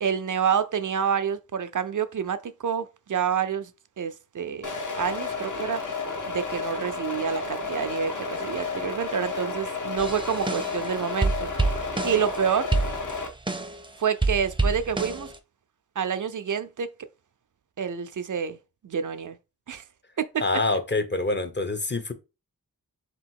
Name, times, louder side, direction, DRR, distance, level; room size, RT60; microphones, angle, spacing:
voice 1, 0.0-3.7 4.0-5.8 6.3-12.7 14.0-15.3 16.0-16.9 17.8-18.6 18.8-19.4 19.7-19.8 20.2-20.4, right 7 dB, 60° right, 0.5 m, -28 dB
sound 1, 4.6-13.3, left 4 dB, 60° left, 1.2 m, -32 dB
sound 2, 10.0-10.9 11.2-12.4 12.7-13.9 14.2-15.4, right 3 dB, 15° right, 0.6 m, -27 dB
voice 2, 20.4-22.1, left 2 dB, 30° left, 0.7 m, -26 dB
3.5 x 2.9 x 4.5 m
wide cardioid pair, 45°, 35 cm